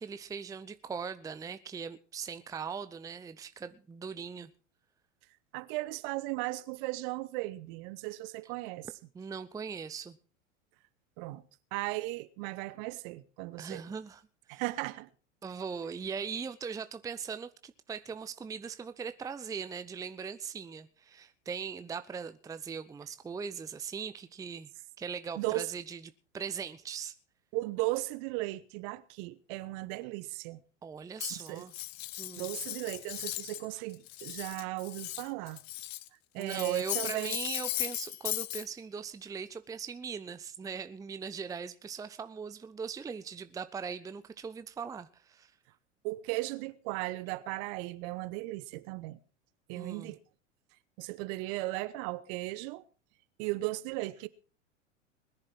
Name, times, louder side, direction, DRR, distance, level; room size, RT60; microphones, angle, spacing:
voice 1, 0.0-4.5 9.1-10.2 13.6-14.2 14.5-14.6 15.4-24.7 25.0-26.0 26.3-27.1 30.8-31.7 32.2-32.5 36.4-45.5 49.7-50.2, right 6 dB, 10° right, 0.6 m, -40 dB
voice 2, 5.5-8.9 11.2-11.4 11.7-13.8 14.5-15.1 25.4-25.7 27.5-30.6 31.4-31.7 32.4-35.6 36.3-37.4 46.0-49.2 49.7-50.2 51.0-52.8 53.4-54.3, right 19 dB, 45° right, 1.1 m, -36 dB
Cutlery silverware, 31.2-33.7 33.9-36.1 36.4-38.6, left 16 dB, 55° left, 0.9 m, -37 dB
20.5 x 10.5 x 4.6 m
figure-of-eight pair, 85°, 37 cm